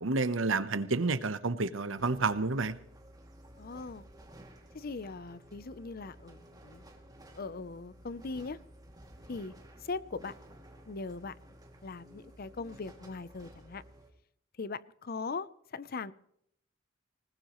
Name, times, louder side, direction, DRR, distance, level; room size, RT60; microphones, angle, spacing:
voice 1, 0.0-2.8, right 3 dB, 80° right, 13 dB, 1.0 m, -30 dB
sound 1, 2.0-14.1, right 1 dB, 20° right, 2.4 m, -54 dB
voice 2, 3.6-4.0 4.7-6.8 7.3-8.6 9.3-9.5 9.8-10.3 10.9-11.4 11.8-13.8 14.6-16.1, left 4 dB, 50° left, 17 dB, 0.6 m, -40 dB
20.0 x 20.0 x 3.1 m, 0.71 s
head